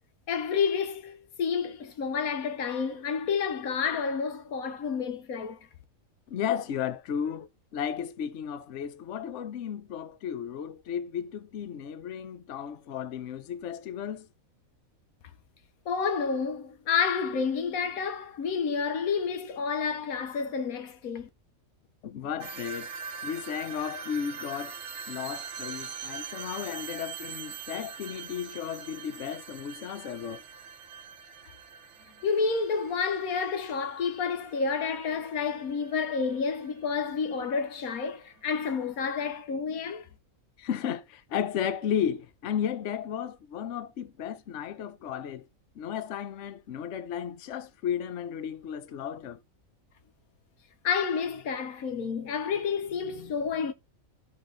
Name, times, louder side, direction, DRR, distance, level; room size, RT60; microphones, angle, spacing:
voice 1, 0.3-5.6 15.9-21.3 32.2-40.1 50.8-53.7, left 6 dB, 85° left, 1.4 m, -29 dB
voice 2, 6.3-14.3 22.0-22.9 23.2-24.8 25.1-30.4 40.6-45.5 45.8-49.4, left 8 dB, 60° left, 1.0 m, -34 dB
sound 1, 22.4-37.4, right 6 dB, 60° right, 1.1 m, -43 dB
13.5 x 6.0 x 3.9 m
omnidirectional pair, 1.5 m